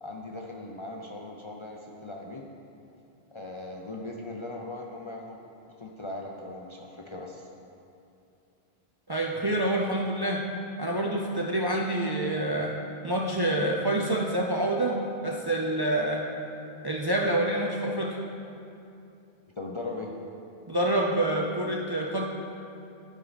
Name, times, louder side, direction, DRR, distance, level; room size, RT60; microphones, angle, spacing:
voice 1, 0.0-2.5 3.3-5.4 5.8-7.5 19.6-20.1, left 2 dB, 40° left, -1 dB, 0.4 m, -39 dB
voice 2, 9.1-10.4 10.8-12.7 13.0-16.2 16.8-18.2 20.7-22.2, right 1 dB, 35° right, -1 dB, 0.4 m, -27 dB
12.5 x 4.6 x 4.0 m, 2.7 s
omnidirectional pair, 1.1 m